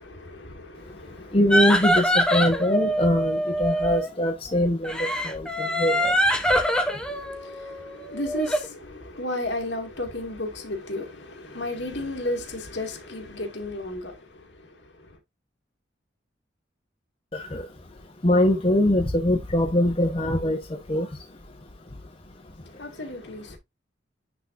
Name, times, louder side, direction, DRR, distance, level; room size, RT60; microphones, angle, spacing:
voice 1, 0.0-1.4 7.1-15.2 22.7-23.6, left 1 dB, 70° left, 2.1 m, -34 dB
voice 2, 1.3-5.0 5.2-6.1 17.5-17.6 18.2-20.6 20.9-21.1, left 1 dB, 30° left, 1.1 m, -22 dB
sound 1, 1.5-4.1 4.8-8.7, equal, 5° left, 1.0 m, -24 dB
9.9 x 3.8 x 2.6 m
head